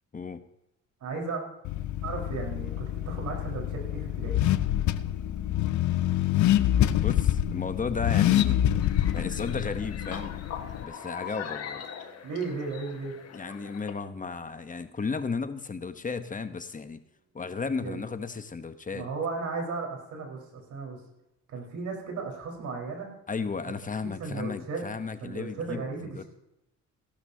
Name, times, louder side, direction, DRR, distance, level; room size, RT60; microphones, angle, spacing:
voice 1, 1.0-1.4 2.0-4.4 12.2-13.1 17.8-18.0 18.9-21.0 21.5-23.1 24.2-24.8 25.2-26.2, right 4 dB, 80° right, 0 dB, 4.5 m, -35 dB
Car / Accelerating revving vroom, 1.6-10.8, left 12 dB, 70° left, 0.7 m, -26 dB
Piano, 2.6-18.1, right 3 dB, 35° right, 4.9 m, -59 dB
voice 2, 7.0-8.6 9.1-10.4 10.8-11.8 13.3-17.0 17.3-19.1 23.3-26.2, left 5 dB, 25° left, 10 dB, 0.9 m, -34 dB
sound 1, 8.8-13.9, left 8 dB, 55° left, 1.5 m, -41 dB
16.5 x 12.0 x 2.8 m, 0.87 s
cardioid pair, 90°, 30 cm